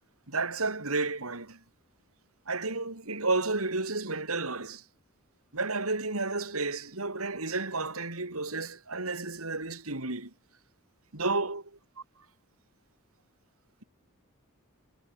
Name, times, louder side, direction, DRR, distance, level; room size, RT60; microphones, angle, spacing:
voice 1, 0.3-1.6 2.5-4.8 5.5-10.3 11.1-11.6, right 3 dB, 75° right, 4.6 m, -31 dB
head